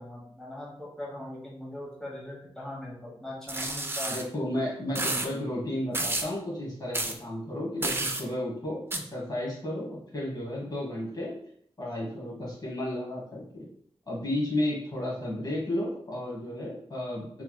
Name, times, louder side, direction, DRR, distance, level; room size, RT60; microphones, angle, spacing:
voice 1, 0.0-4.2, left 1 dB, 5° left, -7 dB, 1.1 m, -40 dB
sound 1, 3.5-4.2 4.9-5.3 5.9-6.3 6.9-7.1 7.8-8.2 8.9-9.0, right 2 dB, 20° right, 0.3 m, -30 dB
voice 2, 4.1-11.3 11.8-13.6 14.1-17.4, left 1 dB, 40° left, -5 dB, 1.1 m, -33 dB
3.1 x 3.0 x 2.2 m, 0.66 s
wide cardioid pair, 110°, 11 cm